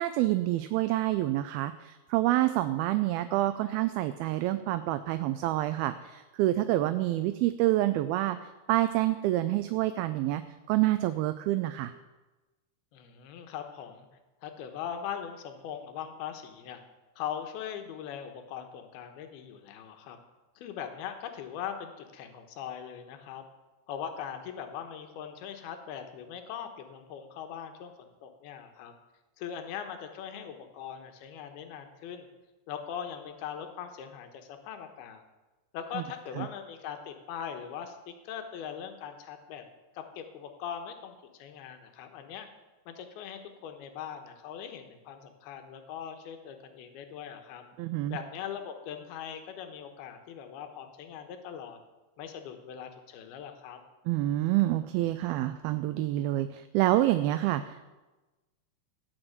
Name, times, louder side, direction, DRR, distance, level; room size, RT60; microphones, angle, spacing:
voice 1, 0.0-10.4 10.7-11.9 36.0-36.1 36.4-36.5 47.8-48.2 54.1-57.9, right 15 dB, 80° right, 11 dB, 2.4 m, -27 dB
voice 2, 12.9-14.1 14.4-16.8 17.2-20.2 20.6-23.5 23.9-28.9 29.4-32.3 32.7-35.2 35.7-39.6 39.9-42.5 42.9-47.6 48.1-51.8 52.2-53.8, left 8 dB, 80° left, 6 dB, 3.0 m, -40 dB
17.0 x 6.1 x 8.0 m, 1.1 s
omnidirectional pair, 4.5 m